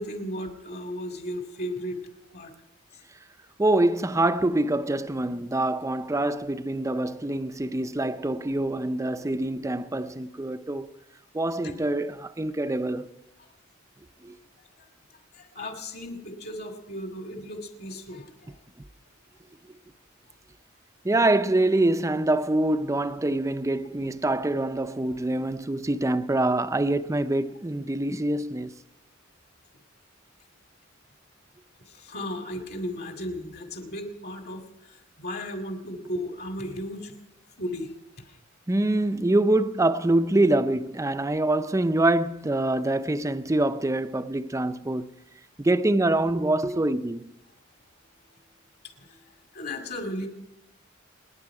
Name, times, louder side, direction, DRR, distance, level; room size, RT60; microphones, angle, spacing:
voice 1, 0.0-2.0 2.3-2.5 2.9-3.0 11.6-11.8 15.3-18.5 31.8-37.1 37.6-37.9 38.3-38.4 49.0-49.2 49.5-50.3, left 1 dB, 50° left, 2.4 m, -35 dB
voice 2, 3.6-10.9 11.3-13.1 14.2-14.4 21.0-28.7 38.7-45.1 45.6-47.3, right 2 dB, 15° right, 0.5 m, -25 dB
28.0 x 9.9 x 4.9 m
head